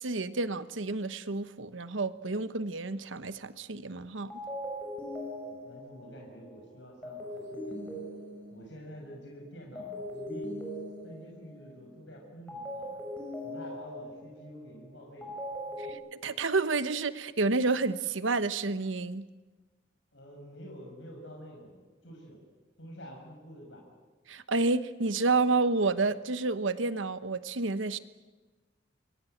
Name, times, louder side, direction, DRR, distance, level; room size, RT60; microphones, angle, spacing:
voice 1, 0.0-4.3 15.8-19.3 24.3-28.0, right 3 dB, 80° right, 13 dB, 1.1 m, -30 dB
sound 1, 3.8-4.0 4.3-9.2 9.8-12.0 12.5-15.9, equal, 5° left, 6.2 m, -40 dB
voice 2, 5.5-8.0 8.5-10.5 11.0-13.0 13.4-15.9 20.1-22.4 22.8-23.8, equal, 70° left, 0 dB, 6.0 m, -48 dB
26.5 x 22.5 x 8.0 m, 1.3 s
head